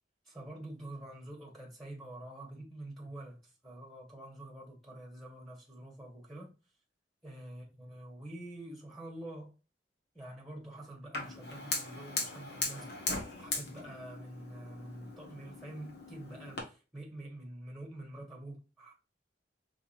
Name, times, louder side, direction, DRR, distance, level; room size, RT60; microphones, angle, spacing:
voice 1, 0.2-3.4 3.6-6.5 7.2-9.5 10.1-18.9, right 1 dB, ahead, 1.4 m, -47 dB
Fire, 11.1-16.6, left 3 dB, 60° left, 1.5 m, -39 dB
5.2 x 3.4 x 2.5 m
head